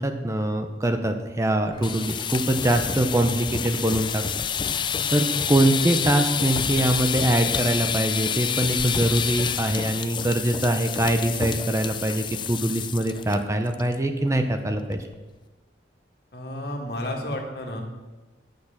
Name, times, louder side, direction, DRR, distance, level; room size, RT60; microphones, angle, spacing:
voice 1, 0.0-4.2 4.6-15.0, right 1 dB, 15° right, 6 dB, 0.7 m, -23 dB
sound 1, 1.7-13.4 13.7-14.0 14.3-14.4 14.7-15.1, left 7 dB, 25° left, 0.4 m, -28 dB
voice 2, 16.3-17.8, left 1 dB, 60° left, 1 dB, 2.0 m, -31 dB
10.0 x 6.5 x 7.1 m, 1.2 s
head